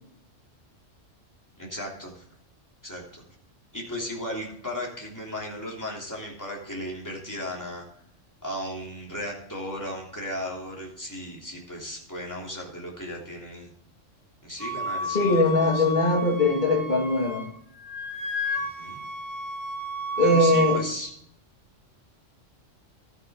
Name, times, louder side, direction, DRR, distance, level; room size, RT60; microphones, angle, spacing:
voice 1, 1.6-2.2 2.8-3.2 3.7-7.8 8.4-13.7 14.4-15.9 18.6-19.0 20.2-21.1, equal, 15° left, -2 dB, 3.1 m, -36 dB
Wind instrument woodwind instrument, 14.6-17.5 17.8-20.8, right 1 dB, 75° left, 2.5 m, -31 dB
voice 2, 15.1-17.5 20.2-20.8, left 2 dB, 40° left, 1 dB, 2.2 m, -21 dB
13.5 x 9.0 x 3.7 m, 0.69 s
omnidirectional pair, 1.3 m